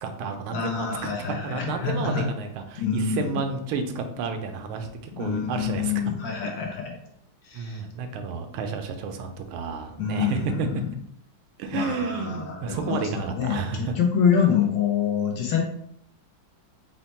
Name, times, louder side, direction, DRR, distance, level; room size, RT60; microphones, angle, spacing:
voice 1, 0.0-1.1 1.4-5.9 7.5-10.7 11.6-14.0, right 5 dB, 80° right, 6 dB, 1.4 m, -31 dB
voice 2, 0.5-2.3 2.8-3.4 5.1-6.9 7.4-7.8 10.0-10.9 11.7-15.6, left 7 dB, 70° left, 1 dB, 1.3 m, -26 dB
4.3 x 2.1 x 4.0 m, 0.70 s
omnidirectional pair, 2.3 m